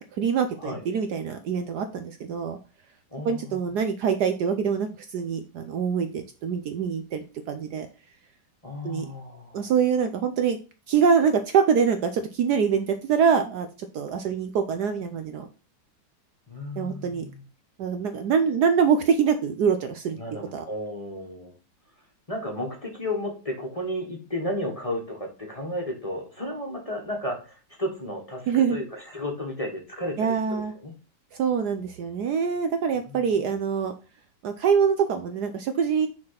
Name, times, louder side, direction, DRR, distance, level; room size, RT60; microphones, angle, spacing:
voice 1, 0.2-2.6 3.2-7.9 8.8-9.0 9.5-10.6 10.9-13.7 13.9-15.5 16.8-17.2 17.8-20.2 20.5-20.6 28.5-28.8 30.2-30.7 31.3-33.9 34.4-36.1, right 6 dB, 65° right, 8 dB, 1.1 m, -24 dB
voice 2, 3.1-3.6 8.6-9.7 16.5-17.4 20.2-21.5 22.3-30.9 33.1-33.3, left 1 dB, 20° left, 1 dB, 1.4 m, -33 dB
6.4 x 4.3 x 5.8 m, 0.33 s
omnidirectional pair, 2.1 m